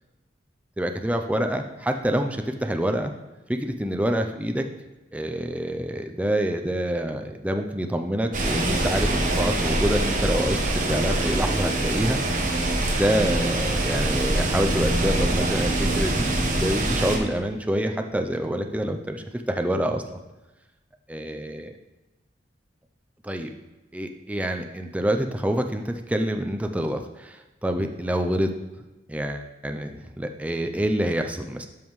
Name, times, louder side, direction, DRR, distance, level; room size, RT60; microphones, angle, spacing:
voice 1, 0.8-3.1 3.5-4.6 5.1-12.2 12.9-20.0 21.1-21.7 23.2-23.5 23.9-28.5 29.1-31.7, equal, 5° right, 5 dB, 0.4 m, -27 dB
sound 1, 8.3-17.2, right 1 dB, 45° right, 1.1 m, -24 dB
12.0 x 5.4 x 3.1 m, 1.1 s
head